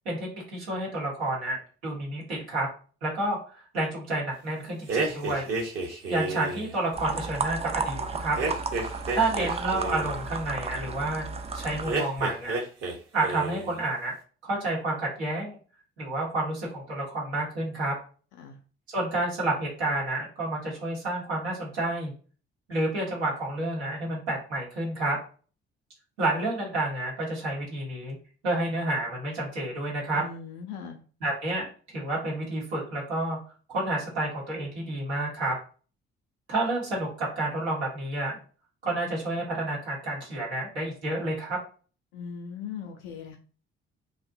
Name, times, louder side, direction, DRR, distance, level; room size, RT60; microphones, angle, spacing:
voice 1, 0.0-2.7 3.0-5.5 6.1-8.4 9.1-11.3 11.5-12.6 13.1-14.1 14.4-15.6 16.0-17.9 18.9-22.1 22.7-25.2 26.2-28.2 28.4-30.2 31.2-33.4 33.7-35.6 36.5-38.4 38.8-41.6, right 2 dB, 85° right, -5 dB, 0.9 m, -30 dB
sound 1, 4.9-6.7 8.4-10.2 11.8-13.0 13.2-13.7, right 3 dB, 45° right, 0.9 m, -31 dB
sound 2, 7.0-11.9, right 4 dB, 20° right, 0.3 m, -33 dB
voice 2, 30.1-31.0 42.1-43.4, left 6 dB, 70° left, 3 dB, 0.5 m, -39 dB
2.5 x 2.1 x 2.5 m, 0.39 s
figure-of-eight pair, 40°, 32 cm